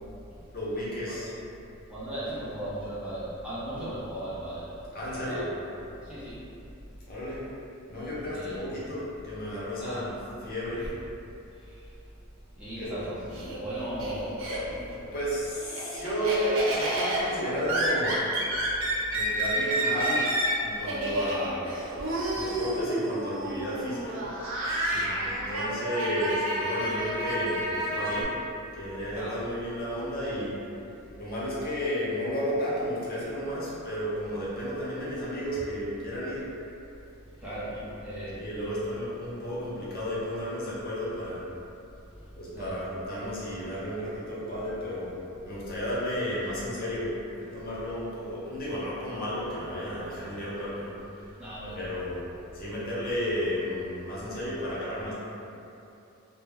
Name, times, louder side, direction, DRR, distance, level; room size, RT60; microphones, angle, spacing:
voice 1, 0.5-1.3 4.9-5.5 7.1-7.5 7.9-10.1 10.4-10.9 12.8-12.9 15.1-18.2 19.1-20.3 20.6-21.6 22.3-24.3 25.2-28.4 28.7-30.6 31.2-36.5 37.7-37.8 38.3-41.4 42.4-45.1 45.4-51.4 51.7-52.2 52.5-55.1, equal, 45° left, -8 dB, 0.6 m, -32 dB
voice 2, 1.9-6.5 8.3-8.6 9.8-10.1 10.8-10.9 11.5-12.1 12.5-13.2 13.5-14.5 15.0-15.1 18.9-19.1 22.3-22.4 24.9-25.2 29.1-29.4 37.3-38.4 42.1-42.8 51.4-51.9, right 1 dB, 5° right, -12 dB, 0.5 m, -38 dB
Laughter, 12.9-15.0 15.3-28.2, right 1 dB, 70° right, 0.5 m, -30 dB
2.1 x 2.0 x 3.4 m, 2.7 s
head